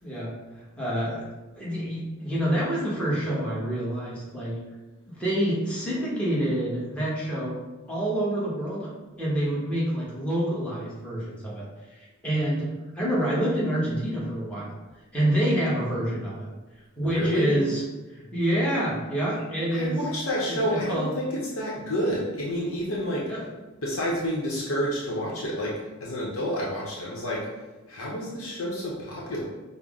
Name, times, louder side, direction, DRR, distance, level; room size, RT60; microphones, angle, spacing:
voice 1, 0.8-1.3 1.6-4.6 5.1-7.6 7.9-8.9 9.2-12.7 12.9-14.7 15.1-16.5 17.0-17.8 18.1-20.0 20.5-21.1 23.2-23.4, right 1 dB, 5° left, -8 dB, 1.0 m, -27 dB
voice 2, 17.0-17.6 19.7-23.3 23.8-27.5 27.9-29.4, equal, 70° left, -5 dB, 0.8 m, -29 dB
5.5 x 2.0 x 3.6 m, 1.2 s
head